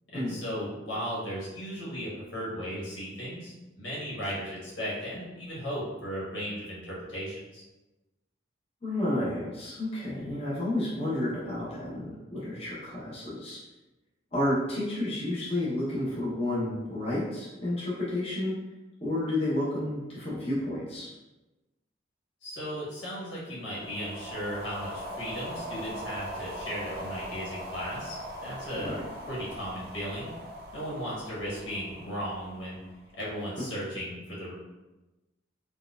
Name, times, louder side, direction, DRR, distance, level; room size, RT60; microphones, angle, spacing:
voice 1, 0.1-7.6 22.4-28.1 28.4-28.9 29.3-30.3 30.7-32.8 33.1-34.5, equal, 90° left, -6 dB, 1.3 m, -36 dB
voice 2, 8.8-13.6 14.3-18.5 19.0-21.1 28.7-29.0, left 1 dB, 35° left, -8 dB, 0.8 m, -31 dB
sound 1, 23.6-33.1, equal, 55° right, 0.5 m, -41 dB
4.3 x 2.3 x 2.3 m, 1.1 s
head